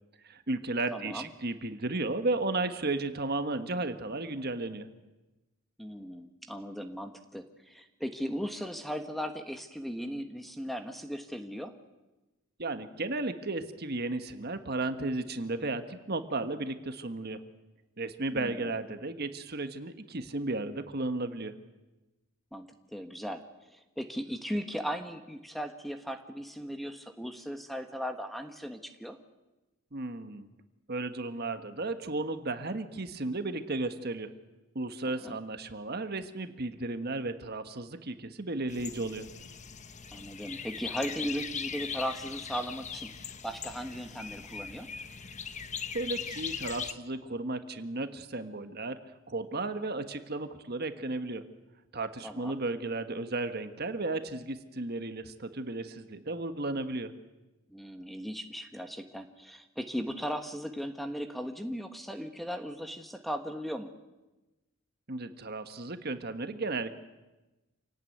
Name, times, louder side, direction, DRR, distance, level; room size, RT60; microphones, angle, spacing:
voice 1, 0.2-4.9 12.6-17.4 18.0-21.5 29.9-30.5 30.9-34.3 34.7-39.3 45.9-49.0 49.3-51.4 51.9-57.1 65.1-67.0, right 2 dB, 45° right, 9 dB, 1.4 m, -34 dB
voice 2, 0.9-1.3 5.8-11.7 18.3-18.7 22.5-29.2 35.0-35.4 40.1-44.9 52.2-52.6 57.7-63.9, equal, ahead, 7 dB, 1.3 m, -37 dB
sound 1, 38.7-46.9, left 6 dB, 35° left, 1.0 m, -40 dB
27.0 x 18.0 x 9.4 m, 1.1 s
head